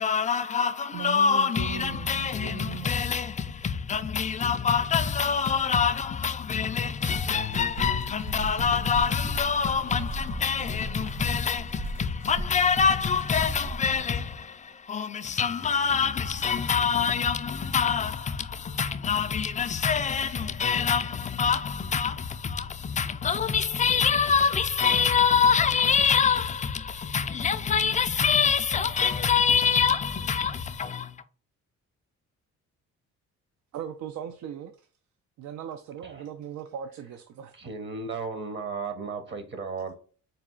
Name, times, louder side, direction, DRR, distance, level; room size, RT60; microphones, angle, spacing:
voice 1, 0.0-31.2, left 6 dB, 25° left, 0.4 m, -25 dB
voice 2, 0.9-2.9 33.7-34.9 35.4-37.5, right 9 dB, 70° right, 0.5 m, -38 dB
sound 1, 7.1-14.1, right 2 dB, 90° right, 0.9 m, -38 dB
voice 3, 37.5-39.9, right 4 dB, 40° right, 0.8 m, -35 dB
4.0 x 2.3 x 3.7 m
cardioid pair, 90°, 30 cm